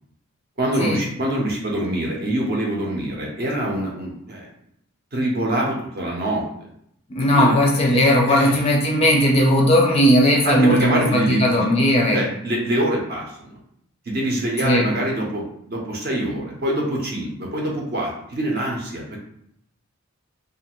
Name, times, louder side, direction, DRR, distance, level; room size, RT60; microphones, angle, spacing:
voice 1, 0.6-4.5 5.1-6.4 7.4-7.5 8.3-8.6 10.4-11.7 12.1-13.5 14.1-19.2, right 1 dB, 45° right, -2 dB, 0.6 m, -24 dB
voice 2, 7.1-12.3 14.6-14.9, equal, 30° left, -1 dB, 0.4 m, -17 dB
2.5 x 2.4 x 2.9 m, 0.73 s
head